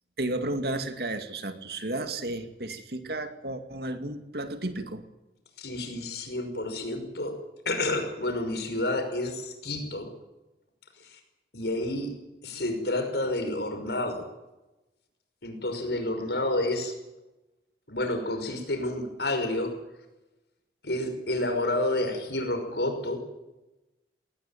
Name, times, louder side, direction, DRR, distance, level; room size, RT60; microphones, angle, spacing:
voice 1, 0.2-5.0, right 2 dB, 60° right, 8 dB, 2.3 m, -33 dB
voice 2, 5.6-7.4 7.7-10.1 11.0-11.2 11.5-12.1 12.4-14.2 15.4-16.9 17.9-19.7 20.8-23.2, left 1 dB, 70° left, 6 dB, 5.7 m, -29 dB
19.5 x 19.0 x 9.3 m, 0.99 s
head